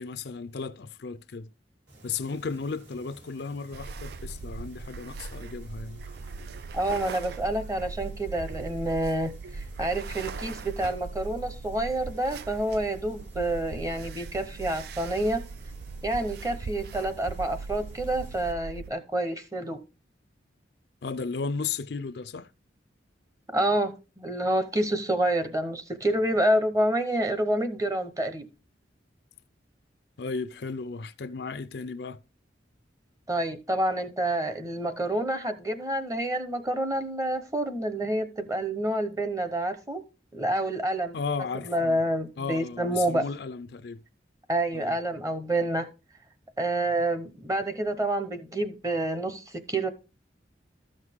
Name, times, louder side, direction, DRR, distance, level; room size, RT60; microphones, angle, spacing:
voice 1, 0.0-1.5 2.0-6.0 21.0-22.5 30.2-32.2 41.1-42.0 42.4-44.0 44.7-45.0, left 4 dB, 60° left, 0.5 m, -35 dB
sound 1, 1.9-18.5, right 1 dB, 70° right, 3.2 m, -52 dB
sound 2, 3.7-18.9, right 4 dB, 55° right, 0.4 m, -39 dB
voice 2, 6.7-15.4 16.0-19.8 23.5-28.5 33.3-40.0 40.3-41.1 41.7-43.2 44.5-45.9 46.6-49.9, right 1 dB, 20° right, 0.9 m, -28 dB
13.0 x 6.4 x 3.6 m
head